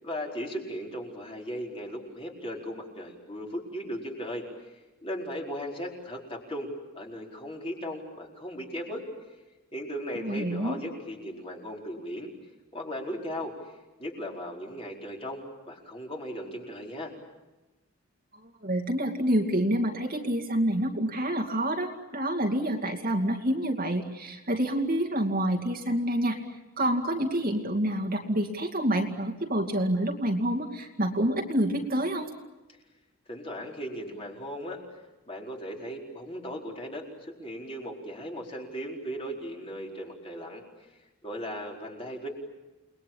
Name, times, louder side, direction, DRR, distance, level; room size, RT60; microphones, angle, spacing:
voice 1, 0.0-4.7 5.0-6.7 6.9-9.0 9.7-12.3 12.7-17.1 33.3-34.8 35.3-40.6 41.2-42.3, equal, 25° left, -1 dB, 4.7 m, -37 dB
voice 2, 10.2-10.8 18.6-32.3, right 1 dB, 40° right, 3 dB, 2.4 m, -28 dB
29.5 x 21.5 x 8.8 m, 1.1 s
head